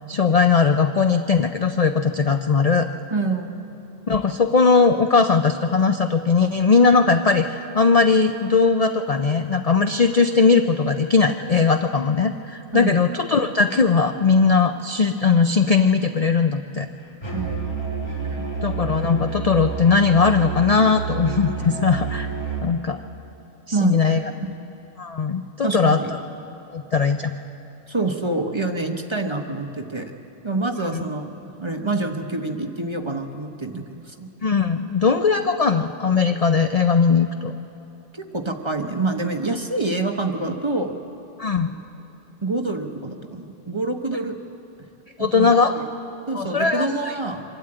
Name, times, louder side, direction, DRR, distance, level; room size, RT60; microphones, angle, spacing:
voice 1, 0.1-2.9 4.1-16.9 18.6-22.3 22.6-23.0 23.7-24.2 25.0-26.0 26.7-27.3 34.4-37.5 41.4-41.8 45.2-45.7 46.3-46.9, left 5 dB, 50° left, 7 dB, 0.4 m, -19 dB
voice 2, 3.1-3.5 12.7-13.0 17.3-18.4 23.7-24.2 25.6-26.1 27.9-30.1 30.4-34.3 38.1-40.9 42.4-44.4 45.2-45.8 46.3-47.4, right 3 dB, 25° right, 4 dB, 0.9 m, -27 dB
Musical instrument, 17.2-22.7, right 5 dB, 20° left, 2.7 m, -29 dB
24.5 x 12.5 x 8.8 m, 2.9 s
omnidirectional pair, 1.3 m